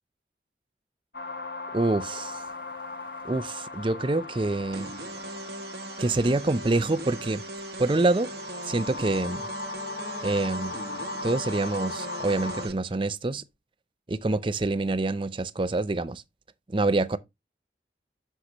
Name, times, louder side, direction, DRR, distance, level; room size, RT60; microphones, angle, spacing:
sound 1, 1.1-12.7, left 3 dB, 65° left, 1.2 m, -38 dB
voice 1, 1.7-2.4 3.2-4.9 6.0-7.4 7.8-8.3 8.6-9.4 10.2-10.7 11.2-13.4 14.1-16.2 16.7-17.2, right 2 dB, 30° right, 0.5 m, -26 dB
sound 2, 4.7-12.7, right 2 dB, 65° right, 0.9 m, -39 dB
8.0 x 6.4 x 3.0 m
head